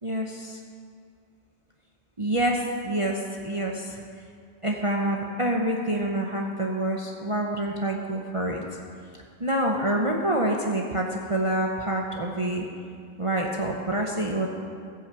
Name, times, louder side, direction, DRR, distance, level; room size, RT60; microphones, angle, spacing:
voice 1, 0.0-0.6 2.2-4.0 4.6-8.6 9.4-12.6 13.2-14.5, right 1 dB, 30° right, 0 dB, 0.8 m, -27 dB
14.5 x 6.3 x 7.6 m, 2.2 s
omnidirectional pair, 1.3 m